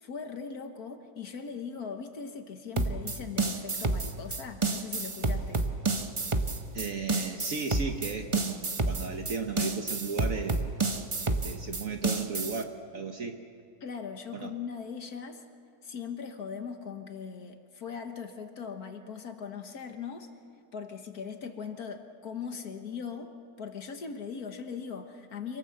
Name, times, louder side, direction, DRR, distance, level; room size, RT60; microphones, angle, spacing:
voice 1, 0.0-5.6 13.8-15.4 15.8-20.3 20.7-23.3 23.6-25.6, left 6 dB, 65° left, 6 dB, 1.8 m, -40 dB
sound 1, 2.8-12.6, right 3 dB, 25° right, 0.8 m, -29 dB
voice 2, 6.7-10.7 11.3-13.4 14.3-14.5, right 5 dB, 55° right, 5 dB, 1.5 m, -35 dB
25.5 x 18.0 x 7.9 m, 2.6 s
omnidirectional pair, 1.8 m